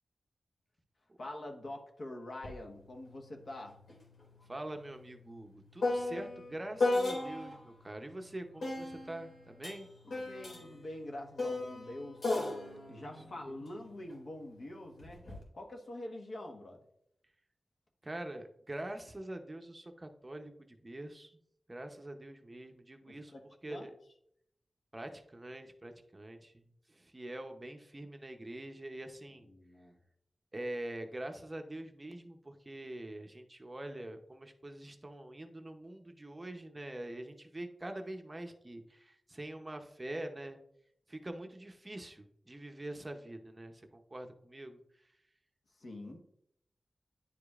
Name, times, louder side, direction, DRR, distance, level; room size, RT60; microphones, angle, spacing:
voice 1, 1.2-3.8 10.0-12.5 12.9-15.2 15.5-16.8 23.1-23.4 23.7-23.9 29.4-29.9 45.7-46.2, left 1 dB, 60° left, 2 dB, 1.2 m, -45 dB
sound 1, 2.4-2.6 2.9-7.7 8.6-14.2 15.0-15.4, left 2 dB, 75° left, 2.2 m, -36 dB
voice 2, 4.5-9.9 13.4-13.6 18.0-21.4 21.7-23.3 23.6-23.9 24.9-29.5 30.5-40.6 41.1-44.8, right 1 dB, 25° right, 5 dB, 0.6 m, -44 dB
10.0 x 5.0 x 2.4 m, 0.72 s
wide cardioid pair, 130°, 0 cm